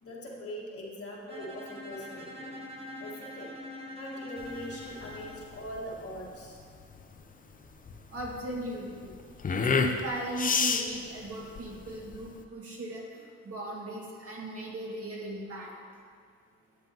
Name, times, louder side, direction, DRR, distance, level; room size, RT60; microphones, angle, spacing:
voice 1, 0.0-2.6 3.0-3.6 3.9-6.6, equal, 50° left, -4 dB, 1.9 m, -42 dB
Bowed string instrument, 1.3-5.5, left 1 dB, 20° right, 1.2 m, -43 dB
sound 1, 4.4-12.4, left 5 dB, 30° left, 0.6 m, -31 dB
voice 2, 8.1-9.1 9.5-15.7, right 1 dB, 50° right, -4 dB, 2.1 m, -38 dB
10.5 x 7.5 x 3.0 m, 2.1 s
cardioid pair, 90°, 30 cm